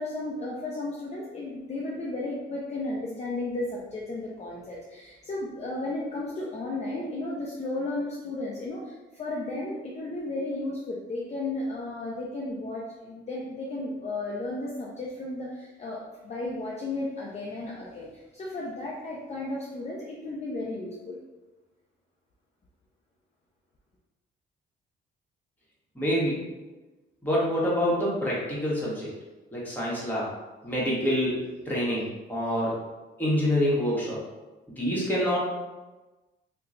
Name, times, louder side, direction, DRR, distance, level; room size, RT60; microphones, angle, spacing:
voice 1, 0.0-21.2, left 2 dB, 35° left, -4 dB, 0.6 m, -34 dB
voice 2, 25.9-26.4 27.2-29.1 29.5-30.3 30.6-32.0 32.3-32.7 33.2-34.2 34.8-35.4, equal, 10° left, -6 dB, 1.3 m, -26 dB
2.8 x 2.2 x 3.8 m, 1.2 s
cardioid pair, 90°, 20 cm